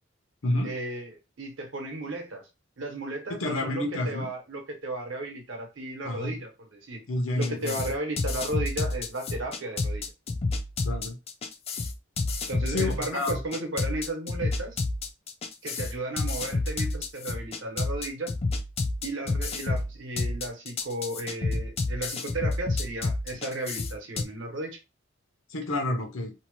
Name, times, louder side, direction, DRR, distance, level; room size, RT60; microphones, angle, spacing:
voice 1, 0.6-2.4 2.8-7.0 7.4-10.0 12.5-14.8 15.6-18.3 19.0-24.8, right 2 dB, 65° right, 0.9 m, -34 dB
voice 2, 3.3-4.3 6.0-6.4 7.1-7.8 10.8-11.2 12.7-13.4 25.5-26.3, left 1 dB, 80° left, 0.8 m, -29 dB
sound 1, 7.4-24.2, left 3 dB, 30° left, 0.4 m, -30 dB
2.7 x 2.1 x 3.0 m
head